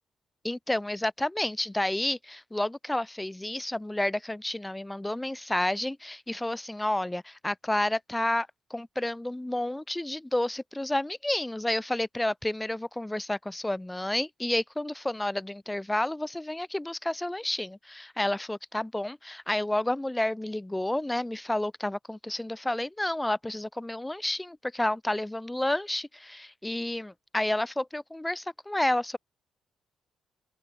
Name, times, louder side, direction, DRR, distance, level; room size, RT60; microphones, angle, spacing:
voice 1, 0.4-29.2, left 1 dB, 10° left, 3.8 m, -30 dB
open air
cardioid pair, 90°, 0 cm